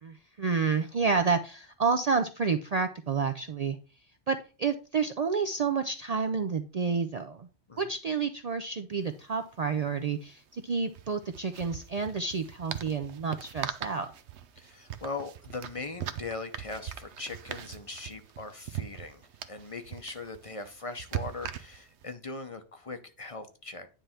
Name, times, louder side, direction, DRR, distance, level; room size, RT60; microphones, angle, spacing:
voice 1, 0.0-3.8 4.3-7.5 7.8-14.1, right 5 dB, 50° right, 7 dB, 0.5 m, -29 dB
sound 1, 8.9-9.0 9.2-9.4 10.9-22.1, right 10 dB, 85° right, 1.0 m, -41 dB
voice 2, 14.6-23.9, left 3 dB, 35° left, 8 dB, 0.7 m, -40 dB
9.9 x 3.4 x 5.6 m, 0.35 s
omnidirectional pair, 1.1 m